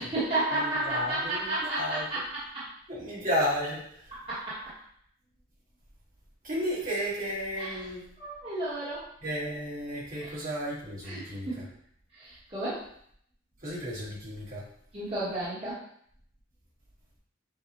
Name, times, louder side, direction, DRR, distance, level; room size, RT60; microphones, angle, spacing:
voice 1, 0.0-2.2 2.5-2.6 4.2-4.6 7.6-7.8 8.2-9.0 10.2-10.3 11.0-11.6 12.1-12.9 14.9-15.8, right 2 dB, 30° right, -12 dB, 1.4 m, -32 dB
voice 2, 0.5-2.2 2.9-4.1 6.4-8.0 9.2-11.6 13.6-14.6, equal, 45° right, -7 dB, 1.8 m, -33 dB
6.9 x 2.4 x 3.0 m, 0.65 s
head